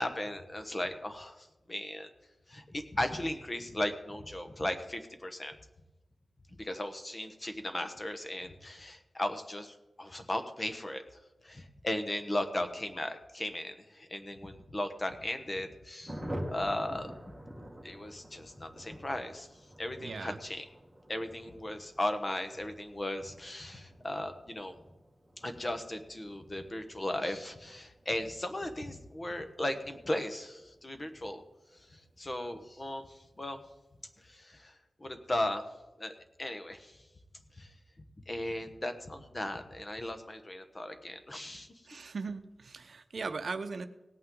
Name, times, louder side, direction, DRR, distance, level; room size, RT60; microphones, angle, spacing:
voice 1, 0.0-2.1 2.5-5.6 6.6-11.0 11.4-16.2 16.5-17.1 17.8-19.5 19.8-20.7 21.1-24.7 25.4-31.4 31.9-33.0 33.4-33.6 34.2-34.7 35.0-35.6 36.0-37.0 37.6-37.7 38.3-41.7, left 1 dB, 25° left, 8 dB, 1.1 m, -36 dB
Thunder, 16.1-32.2 32.5-32.6 32.8-33.0 33.2-33.7, equal, 5° right, 1.9 m, -48 dB
voice 2, 20.0-20.4 41.9-43.9, right 4 dB, 60° right, 9 dB, 0.7 m, -38 dB
18.0 x 8.7 x 3.8 m, 1.0 s
wide cardioid pair, 135°, 0 cm